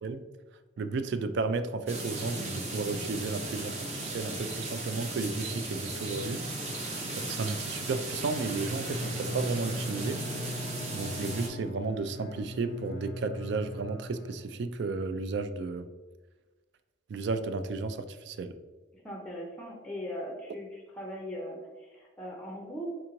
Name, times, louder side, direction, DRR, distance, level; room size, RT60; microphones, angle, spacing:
voice 1, 0.8-6.4 7.1-10.5 10.9-15.9 17.1-18.5, right 3 dB, 65° right, 10 dB, 0.3 m, -33 dB
sound 1, 1.9-11.5, right 2 dB, 35° right, 0.6 m, -36 dB
Bowed string instrument, 8.3-14.9, left 1 dB, 65° left, 0.4 m, -40 dB
voice 2, 18.9-22.9, equal, 5° left, -1 dB, 0.5 m, -39 dB
3.5 x 3.0 x 3.7 m, 1.2 s
head